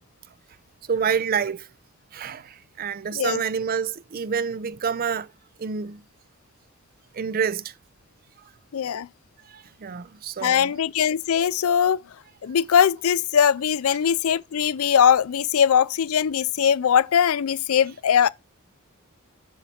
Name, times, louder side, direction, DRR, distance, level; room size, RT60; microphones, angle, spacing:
voice 1, 0.9-1.7 2.1-5.3 5.6-6.0 7.1-7.7 9.5-10.7, right 6 dB, 40° right, 0.4 m, -28 dB
voice 2, 8.7-9.1 10.4-12.0 12.4-18.3, left 8 dB, 75° left, 0.4 m, -21 dB
9.1 x 5.8 x 4.2 m
head